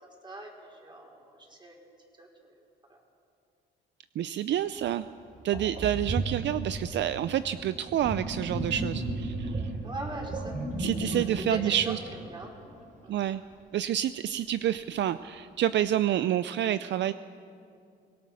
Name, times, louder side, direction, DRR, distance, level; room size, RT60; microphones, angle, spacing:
voice 1, 0.0-1.8 2.2-2.5 2.9-3.0 5.6-5.8 9.8-10.6 11.1-11.2 11.5-12.7 13.0-13.1, right 1 dB, 25° right, -1 dB, 4.9 m, -42 dB
voice 2, 4.2-5.0 5.4-9.6 10.8-12.0 13.1-13.4 13.7-17.1, right 11 dB, 65° right, 13 dB, 0.5 m, -28 dB
Sink (filling or washing), 4.8-4.9 5.5-12.8, right 2 dB, 40° right, 3.6 m, -34 dB
24.0 x 18.5 x 6.3 m, 2.4 s
cardioid pair, 90°, 20 cm